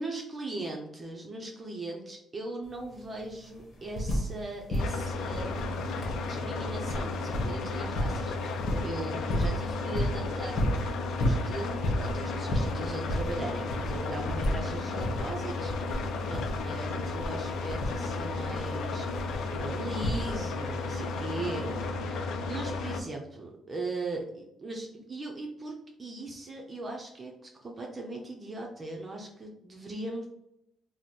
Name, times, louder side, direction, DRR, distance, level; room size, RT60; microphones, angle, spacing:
voice 1, 0.0-5.8 6.3-10.6 11.1-27.3 27.6-30.3, right 2 dB, 30° right, 0 dB, 0.6 m, -39 dB
sound 1, 2.6-2.7 3.0-4.4 4.7-20.7 21.7-21.8, equal, 55° left, 1.0 m, -33 dB
sound 2, 4.8-23.0, left 3 dB, 75° left, 0.4 m, -33 dB
3.1 x 2.1 x 4.1 m, 0.81 s
cardioid pair, 90°, 0 cm